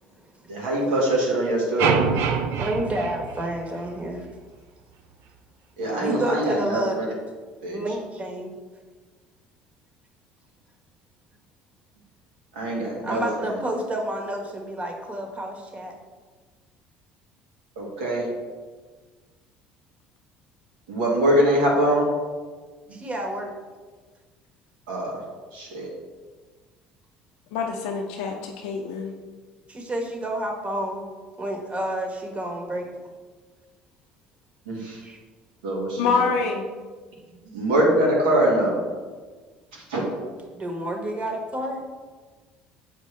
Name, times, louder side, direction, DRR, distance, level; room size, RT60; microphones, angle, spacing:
voice 1, 0.5-2.0 5.8-7.0 7.6-7.8 12.5-13.2 17.8-18.3 20.9-22.1 24.9-25.2 25.5-25.9 34.6-35.0 35.6-36.2 37.5-38.8 39.9-40.0, right 1 dB, 90° right, -3 dB, 1.7 m, -23 dB
sound 1, 1.8-4.1, right 6 dB, 70° right, 0.5 m, -25 dB
voice 2, 2.6-4.3 6.0-7.0 7.7-8.5 13.0-15.9 22.9-23.5 29.7-31.0 31.4-32.9 35.0-35.2 40.5-41.8, right 1 dB, 30° right, 2 dB, 1.3 m, -29 dB
voice 3, 27.5-29.1 36.0-36.7, left 5 dB, 80° left, 1 dB, 0.5 m, -26 dB
6.8 x 4.7 x 3.3 m, 1.4 s
supercardioid pair, 75°, 4 cm